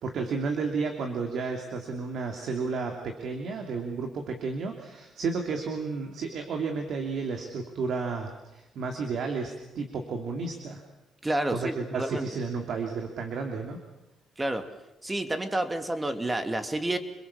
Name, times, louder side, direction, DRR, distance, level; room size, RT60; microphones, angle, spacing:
voice 1, 0.0-10.8 11.5-13.8, right 4 dB, 70° right, 3 dB, 2.9 m, -32 dB
voice 2, 11.2-12.3 14.4-14.7 15.0-17.0, right 1 dB, 15° right, 8 dB, 2.5 m, -29 dB
28.0 x 22.0 x 7.3 m, 0.97 s
cardioid pair, 90°, 0 cm